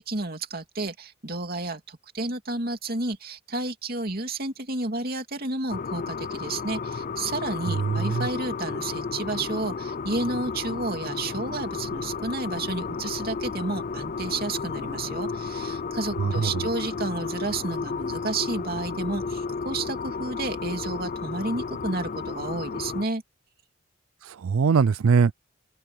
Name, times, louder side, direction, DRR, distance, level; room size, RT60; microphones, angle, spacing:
voice 1, 0.0-23.2, right 2 dB, 45° right, 2.7 m, -31 dB
sound 1, 5.7-23.1, left 4 dB, 40° left, 0.4 m, -33 dB
voice 2, 7.8-8.3 16.2-16.5 24.2-25.3, right 5 dB, 85° right, 0.4 m, -22 dB
head